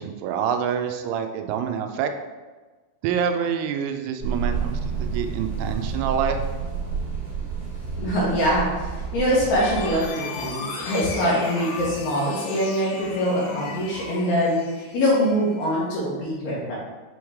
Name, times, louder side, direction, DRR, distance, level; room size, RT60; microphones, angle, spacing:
voice 1, 0.0-2.1 3.0-6.4, right 7 dB, 90° right, 6 dB, 3.1 m, -26 dB
sound 1, 4.2-10.1, right 6 dB, 65° right, 1.2 m, -30 dB
voice 2, 8.0-14.6 14.9-16.8, equal, 70° left, -6 dB, 2.8 m, -23 dB
sound 2, 9.6-15.8, left 4 dB, 90° left, 3.5 m, -36 dB
8.7 x 3.1 x 3.5 m, 1.3 s
omnidirectional pair, 5.6 m